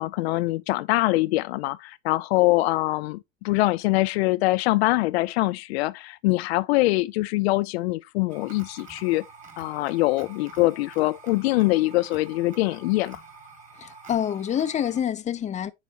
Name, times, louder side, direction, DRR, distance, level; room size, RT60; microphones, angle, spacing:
voice 1, 0.0-3.2 3.4-9.3 9.6-13.2, left 19 dB, 65° left, 0.5 m, -23 dB
sound 1, 8.3-15.0, right 4 dB, 20° right, 1.9 m, -47 dB
voice 2, 13.8-15.7, left 9 dB, 20° left, 0.6 m, -27 dB
9.5 x 4.1 x 2.9 m
hypercardioid pair, 95°, 34 cm